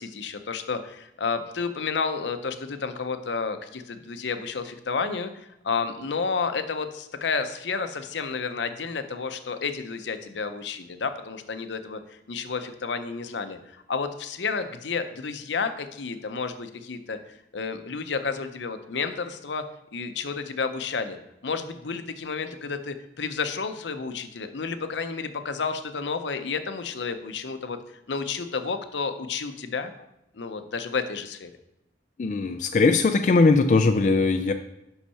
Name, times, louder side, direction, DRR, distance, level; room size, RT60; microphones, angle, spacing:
voice 1, 0.0-12.0 12.3-17.2 17.5-19.6 19.9-21.2 21.4-27.8 28.1-29.9 30.3-31.5, left 5 dB, 80° left, 9 dB, 0.7 m, -31 dB
voice 2, 32.2-34.5, left 3 dB, 40° left, 7 dB, 0.3 m, -20 dB
5.7 x 5.5 x 5.6 m, 0.87 s
head